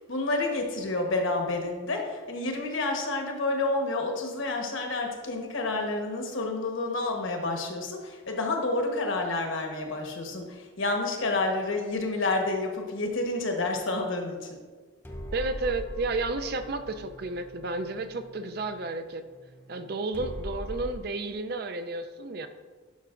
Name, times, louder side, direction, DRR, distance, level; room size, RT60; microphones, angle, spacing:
voice 1, 0.0-14.6, left 2 dB, 70° left, 2 dB, 1.1 m, -29 dB
sound 1, 15.0-21.0, equal, 10° left, 0.6 m, -41 dB
voice 2, 15.3-19.2 19.7-22.5, right 2 dB, 50° right, 9 dB, 0.4 m, -32 dB
11.5 x 5.7 x 2.5 m, 1.5 s
head